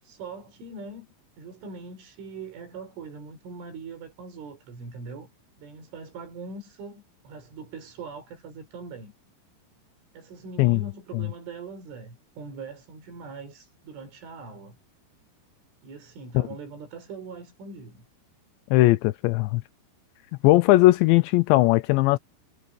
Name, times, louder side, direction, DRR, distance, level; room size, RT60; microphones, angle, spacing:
voice 1, 0.0-1.1 1.4-5.3 5.6-9.1 10.1-14.8 15.8-18.0, right 4 dB, 75° right, 8.2 m, -41 dB
voice 2, 18.7-19.6 20.4-22.2, left 18 dB, 80° left, 2.7 m, -19 dB
omnidirectional pair, 5.6 m